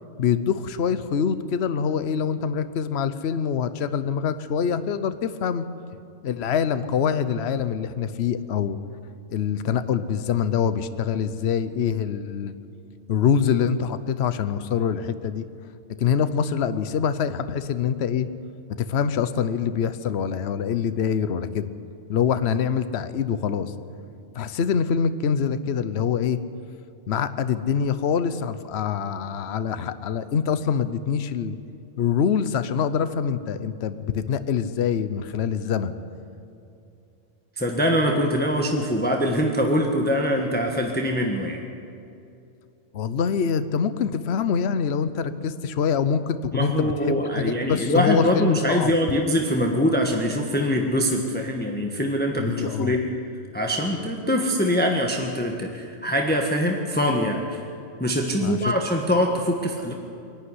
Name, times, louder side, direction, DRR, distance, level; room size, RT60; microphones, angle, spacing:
voice 1, 0.2-5.7 6.2-8.8 9.3-12.5 13.1-15.4 16.0-18.3 18.8-21.7 22.1-23.7 24.3-26.4 27.1-31.6 32.0-35.9 42.9-48.9 52.4-53.0 58.4-58.8, left 7 dB, 60° left, 12 dB, 1.0 m, -25 dB
voice 2, 37.6-41.6 46.5-53.1 53.5-57.6 58.0-59.9, equal, 10° left, 1 dB, 1.3 m, -23 dB
23.5 x 11.5 x 9.7 m, 2.6 s
omnidirectional pair, 1.3 m